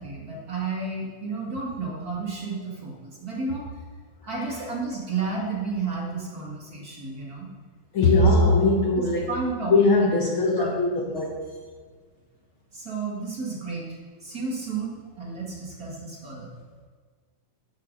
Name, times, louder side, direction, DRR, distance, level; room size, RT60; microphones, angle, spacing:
voice 1, 0.0-3.7 4.2-7.5 8.0-8.4 9.0-10.1 10.6-10.8 12.7-16.6, right 4 dB, 35° right, -3 dB, 2.0 m, -32 dB
voice 2, 7.9-9.3 9.7-11.3, left 2 dB, 60° left, -1 dB, 1.4 m, -20 dB
14.0 x 6.7 x 5.3 m, 1.5 s
omnidirectional pair, 3.8 m